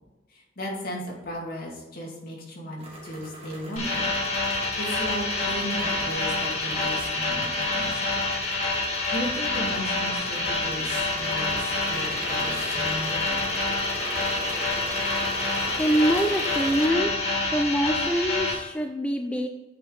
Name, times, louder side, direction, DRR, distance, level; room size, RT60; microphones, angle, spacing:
voice 1, 0.3-4.1 4.8-8.2 9.1-13.4, equal, 55° left, -2 dB, 2.3 m, -35 dB
sound 1, 2.8-16.9, right 1 dB, 35° right, 2.1 m, -40 dB
sound 2, 3.8-18.5, left 2 dB, 40° left, 2.0 m, -27 dB
voice 2, 15.8-17.1 17.5-19.5, equal, 5° left, 4 dB, 0.4 m, -24 dB
8.4 x 5.1 x 4.0 m, 1.1 s
head